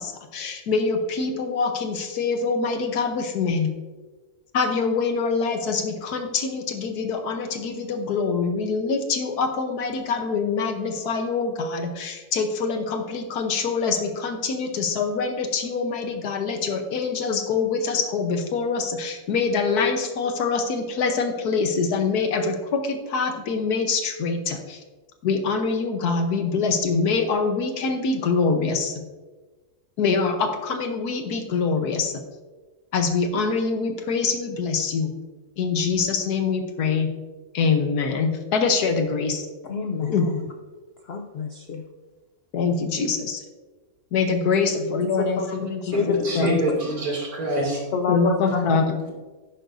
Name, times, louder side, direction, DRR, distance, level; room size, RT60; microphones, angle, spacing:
voice 1, 0.0-3.7 4.5-24.8 25.2-29.0 30.0-32.2 32.9-35.1 35.6-37.1 37.5-39.4 40.0-40.2 42.5-43.4 44.1-46.6 48.1-48.9, left 4 dB, 80° left, 6 dB, 1.5 m, -24 dB
voice 2, 39.6-40.4 41.1-41.8 45.2-45.6 45.8-46.3 47.9-48.7, left 5 dB, 60° left, 4 dB, 0.6 m, -27 dB
voice 3, 45.9-47.8, right 1 dB, 65° right, -3 dB, 3.0 m, -26 dB
11.0 x 9.0 x 2.6 m, 1.3 s
omnidirectional pair, 1.7 m